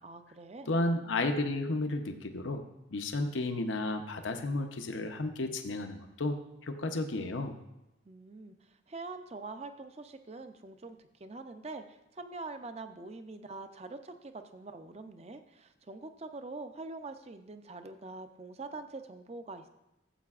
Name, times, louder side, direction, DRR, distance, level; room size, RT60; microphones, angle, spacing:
voice 1, 0.0-0.7 8.1-19.7, right 3 dB, 35° right, 9 dB, 0.5 m, -44 dB
voice 2, 0.7-2.6 2.9-6.4 6.6-7.6, left 2 dB, 85° left, 6 dB, 0.7 m, -32 dB
14.0 x 7.7 x 2.4 m, 0.92 s
head